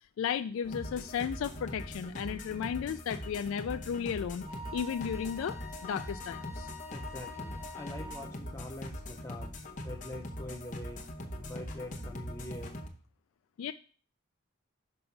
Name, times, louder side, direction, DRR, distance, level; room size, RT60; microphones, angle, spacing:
voice 1, 0.2-4.5 4.7-6.7 13.6-13.7, left 7 dB, 80° left, 9 dB, 0.3 m, -34 dB
sound 1, 0.6-12.9, left 1 dB, 35° left, 1.0 m, -42 dB
Wind instrument woodwind instrument, 4.4-8.3, left 2 dB, 40° right, 2.7 m, -47 dB
voice 2, 6.9-9.5 9.8-11.0 11.3-12.8, left 1 dB, 15° left, 0 dB, 0.5 m, -44 dB
5.5 x 5.2 x 5.8 m, 0.42 s
head